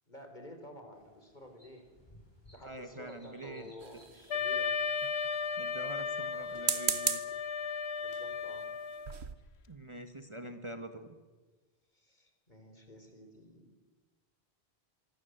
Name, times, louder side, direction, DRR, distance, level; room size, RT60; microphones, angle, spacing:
voice 1, 0.1-1.9 2.5-4.7 8.0-8.7 11.9-13.6, left 1 dB, 45° left, 5 dB, 4.5 m, -51 dB
sound 1, 0.9-7.1, equal, 25° left, 7.7 m, -63 dB
voice 2, 2.6-3.7 5.6-7.2 9.7-11.2, right 1 dB, 30° right, 7 dB, 1.5 m, -45 dB
sound 2, 3.8-4.6 6.5-7.4 8.1-8.3 8.8-8.9 9.1-9.4, right 6 dB, 80° right, 1.5 m, -34 dB
Wind instrument woodwind instrument, 4.3-9.2, left 5 dB, 80° left, 1.3 m, -35 dB
25.5 x 24.0 x 8.1 m, 1.3 s
omnidirectional pair, 1.1 m